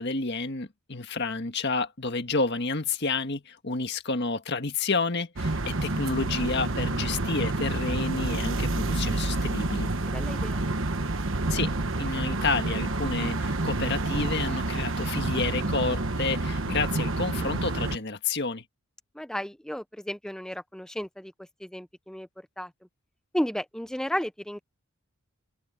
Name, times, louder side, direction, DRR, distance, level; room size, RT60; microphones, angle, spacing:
voice 1, 0.0-9.9 11.5-11.7 12.0-18.6, left 3 dB, 50° left, 1.8 m, -30 dB
sound 1, 5.4-18.0, right 2 dB, 60° right, 1.3 m, -28 dB
voice 2, 10.0-10.7 19.1-22.7 23.3-24.6, equal, 5° left, 0.4 m, -33 dB
open air
head